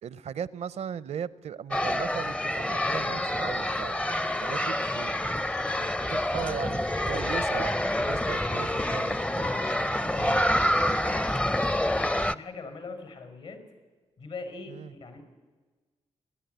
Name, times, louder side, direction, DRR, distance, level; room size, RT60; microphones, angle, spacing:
voice 1, 0.0-4.0 4.4-5.2 5.8-11.1 14.8-14.9, right 8 dB, 75° right, 18 dB, 0.6 m, -38 dB
sound 1, 1.7-12.3, left 1 dB, 10° left, 0.5 m, -27 dB
voice 2, 9.7-10.3 10.8-13.6 14.2-15.2, left 4 dB, 80° left, 6 dB, 5.2 m, -42 dB
29.5 x 11.0 x 8.0 m, 1.3 s
supercardioid pair, 50°, 12 cm